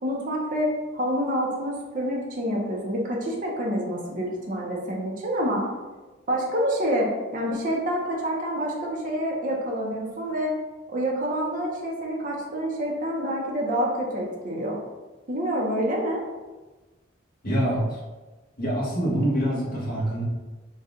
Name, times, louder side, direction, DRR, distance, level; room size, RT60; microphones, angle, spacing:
voice 1, 0.0-5.7 6.3-10.5 10.9-14.8 15.3-16.2, equal, 45° right, -2 dB, 0.7 m, -27 dB
voice 2, 17.4-18.0 18.6-20.2, right 1 dB, 50° left, -4 dB, 1.2 m, -25 dB
4.1 x 2.4 x 3.7 m, 1.2 s
head